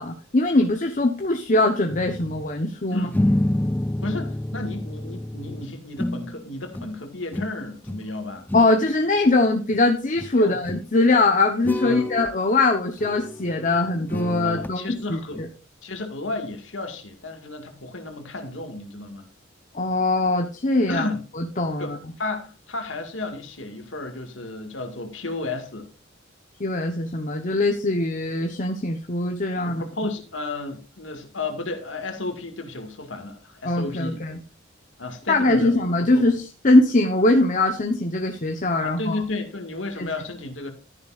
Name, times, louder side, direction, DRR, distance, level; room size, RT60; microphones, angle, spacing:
voice 1, 0.0-3.1 8.5-15.5 19.7-21.0 21.4-22.0 26.6-29.8 33.6-34.4 35.3-39.2 40.0-40.1, left 2 dB, 40° left, 1.0 m, -21 dB
sound 1, 1.9-2.5 3.1-6.5 6.7-7.0 7.3-8.1 8.4-8.8 9.7-9.8 10.2-10.3 10.6-10.9 11.6-12.4 13.0-14.7 15.3-15.4, left 1 dB, 10° left, 0.4 m, -29 dB
voice 2, 4.0-8.5 10.4-10.6 11.8-12.1 14.4-15.4 15.8-19.3 20.9-21.2 21.8-25.9 29.7-34.2 35.0-35.8 36.1-36.3 38.8-40.7, left 2 dB, 85° left, 2.1 m, -33 dB
13.0 x 10.0 x 2.5 m
head